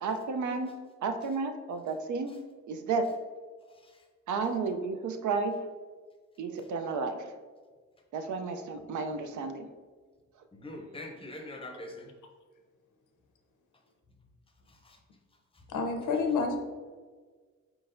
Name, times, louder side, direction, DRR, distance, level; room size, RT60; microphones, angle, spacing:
voice 1, 0.0-0.7 1.0-2.3 2.7-3.1 4.3-5.6 6.4-7.3 8.1-9.7, right 4 dB, 75° right, 6 dB, 0.5 m, -32 dB
voice 2, 10.5-12.1 14.7-15.0 15.5-15.7, left 1 dB, 20° left, 2 dB, 0.6 m, -44 dB
voice 3, 15.7-16.6, left 4 dB, 90° left, 4 dB, 0.7 m, -28 dB
4.6 x 3.8 x 2.6 m, 1.5 s
wide cardioid pair, 120°, 30 cm